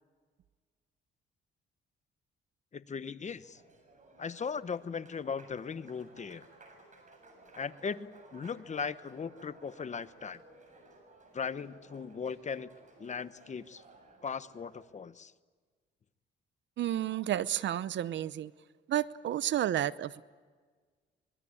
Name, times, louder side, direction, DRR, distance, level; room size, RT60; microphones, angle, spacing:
voice 1, 2.7-3.6 4.2-6.4 7.6-10.4 11.3-12.7 13.0-13.8 14.2-15.3, left 6 dB, 35° left, 1.0 m, -38 dB
Applause, 3.1-15.0, right 2 dB, 40° right, 7.3 m, -58 dB
voice 2, 16.8-18.5 18.9-20.2, right 11 dB, 65° right, 0.8 m, -31 dB
24.5 x 22.5 x 8.6 m
cardioid pair, 90°, 20 cm